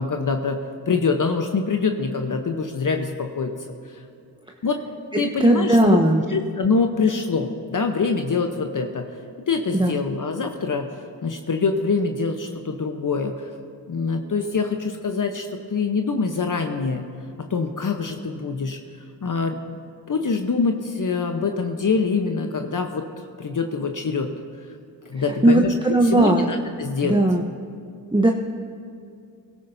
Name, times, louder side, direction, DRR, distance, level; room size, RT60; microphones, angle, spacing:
voice 1, 0.0-3.5 4.6-4.8 5.2-6.0 6.3-9.1 9.5-10.9 11.1-13.5 13.9-15.5 15.7-17.1 17.4-18.8 19.2-19.8 20.1-23.0 23.4-24.3 25.1-27.2, left 4 dB, 45° left, 5 dB, 1.0 m, -24 dB
voice 2, 5.1-6.2 9.7-9.9 25.4-26.4 27.0-27.4 28.1-28.3, right 1 dB, 10° right, 2 dB, 0.8 m, -17 dB
22.0 x 13.0 x 2.7 m, 2.3 s
supercardioid pair, 45°, 44 cm